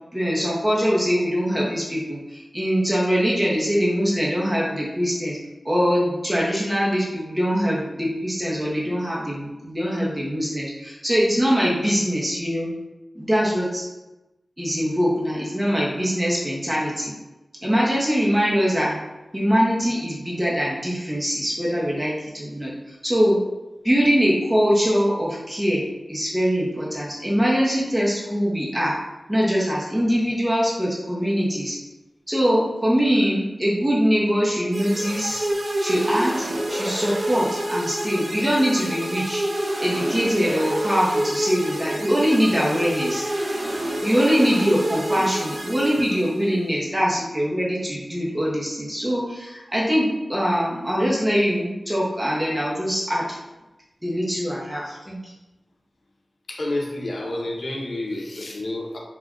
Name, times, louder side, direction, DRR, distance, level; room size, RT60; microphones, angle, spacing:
voice 1, 0.1-5.4 5.6-12.7 13.1-13.9 14.6-17.1 17.6-19.0 19.3-22.7 23.0-23.4 23.8-28.9 29.3-31.8 32.3-35.5 35.8-39.4 39.8-43.3 44.0-53.2 54.0-55.2, equal, 10° right, -6 dB, 0.7 m, -22 dB
sound 1, 34.7-46.6, right 1 dB, 45° right, 0.5 m, -28 dB
voice 2, 56.5-59.0, left 1 dB, 65° left, -1 dB, 0.5 m, -29 dB
2.4 x 2.1 x 3.6 m, 1.0 s
wide cardioid pair, 95°, 0 cm